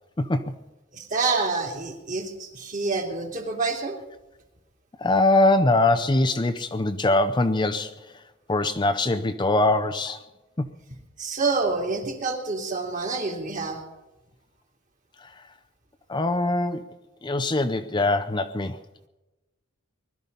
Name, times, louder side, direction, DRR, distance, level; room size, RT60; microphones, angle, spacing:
voice 1, 0.2-0.5 5.0-8.2 8.5-10.2 10.6-10.7 15.2-15.5 16.1-16.9 17.2-18.8, left 2 dB, 20° left, 7 dB, 0.6 m, -23 dB
voice 2, 0.9-4.0 11.2-13.8, right 4 dB, 40° right, 2 dB, 2.9 m, -27 dB
20.5 x 12.5 x 5.4 m, 1.0 s
head